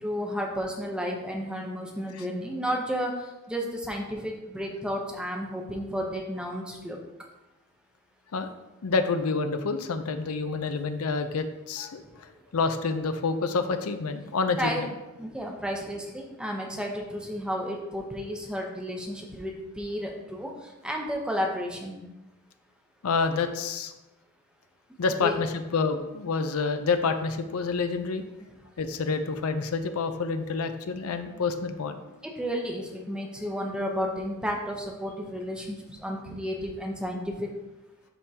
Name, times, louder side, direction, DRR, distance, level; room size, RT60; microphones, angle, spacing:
voice 1, 0.0-3.2 3.5-7.0 14.6-14.9 15.2-20.5 20.8-22.0 25.2-25.4 32.2-37.5, equal, 5° right, 0 dB, 0.7 m, -32 dB
voice 2, 8.8-14.9 23.0-23.9 25.0-28.2 28.8-32.0, left 4 dB, 75° left, 8 dB, 0.5 m, -28 dB
11.0 x 3.6 x 2.8 m, 1.0 s
head